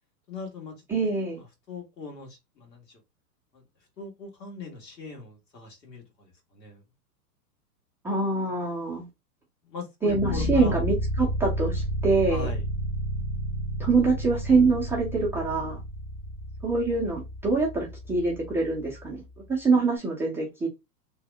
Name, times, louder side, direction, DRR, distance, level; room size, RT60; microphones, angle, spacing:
voice 1, 0.3-0.8 1.3-3.0 3.5-3.6 4.0-6.8 9.6-10.8 12.3-12.6, left 4 dB, 90° left, 1.5 m, -40 dB
voice 2, 0.9-1.4 8.0-9.0 10.0-12.5 13.8-15.8 16.6-19.2 19.5-20.7, right 3 dB, 5° right, 0.3 m, -25 dB
sound 1, 10.1-19.2, equal, 20° left, 0.7 m, -31 dB
2.8 x 2.1 x 3.2 m
hypercardioid pair, 110°, 49 cm